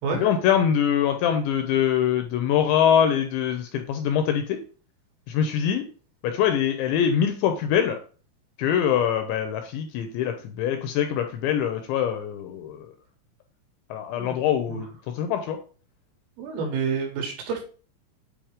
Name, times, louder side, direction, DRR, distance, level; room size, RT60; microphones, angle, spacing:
voice 1, 0.2-4.6 5.3-5.9 6.2-8.0 8.6-12.9 13.9-15.6, left 9 dB, 80° left, 6 dB, 2.6 m, -23 dB
voice 2, 14.1-14.8 16.4-17.6, right 5 dB, 85° right, 1 dB, 4.3 m, -29 dB
8.6 x 3.1 x 4.9 m, 0.39 s
omnidirectional pair, 5.7 m